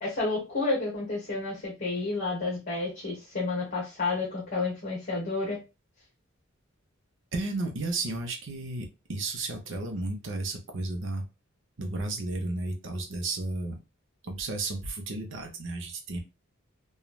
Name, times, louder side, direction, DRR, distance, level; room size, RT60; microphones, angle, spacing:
voice 1, 0.0-5.6, left 3 dB, 45° left, -5 dB, 1.2 m, -30 dB
voice 2, 7.3-11.2 11.8-13.8 14.2-16.2, right 2 dB, 65° right, 3 dB, 0.7 m, -33 dB
3.1 x 2.3 x 2.3 m, 0.27 s
head